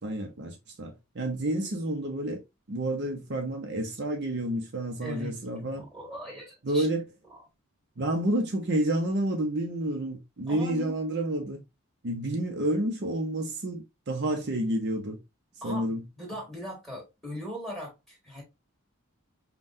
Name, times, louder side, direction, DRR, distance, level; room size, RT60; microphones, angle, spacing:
voice 1, 0.0-2.4 2.7-5.8 6.6-7.0 8.0-11.6 12.0-15.2 15.6-16.0, right 1 dB, 50° right, 0.6 m, -29 dB
voice 2, 5.0-6.9 7.3-7.4 10.5-11.0 15.6-18.4, left 1 dB, ahead, 1.9 m, -40 dB
5.4 x 2.2 x 2.6 m
head